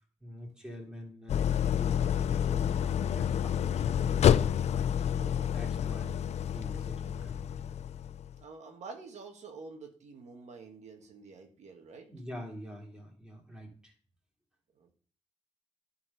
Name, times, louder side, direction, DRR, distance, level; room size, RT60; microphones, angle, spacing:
voice 1, 0.2-4.5 5.0-6.2 6.5-7.7 12.1-13.9, equal, 5° right, 0 dB, 2.9 m, -46 dB
Idling, 1.3-8.3, left 9 dB, 75° left, 0.4 m, -29 dB
voice 2, 8.4-12.1 14.8-14.9, right 4 dB, 80° right, 3 dB, 1.5 m, -48 dB
11.0 x 4.5 x 5.6 m, 0.43 s
wide cardioid pair, 115°, 11 cm